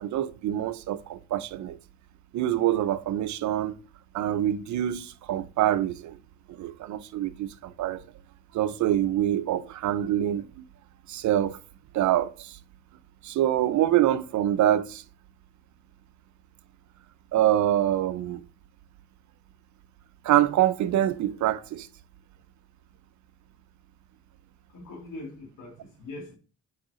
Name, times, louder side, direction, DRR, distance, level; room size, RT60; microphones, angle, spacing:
voice 1, 0.0-1.8 2.3-3.8 4.1-6.2 6.5-8.0 8.5-10.5 11.1-11.6 11.9-12.6 13.2-15.0 17.3-18.4 20.2-21.9, right 12 dB, 70° right, 0.7 m, -25 dB
voice 2, 24.7-26.4, left 2 dB, 90° left, 3.1 m, -42 dB
7.8 x 4.8 x 2.5 m
cardioid pair, 90°, 30 cm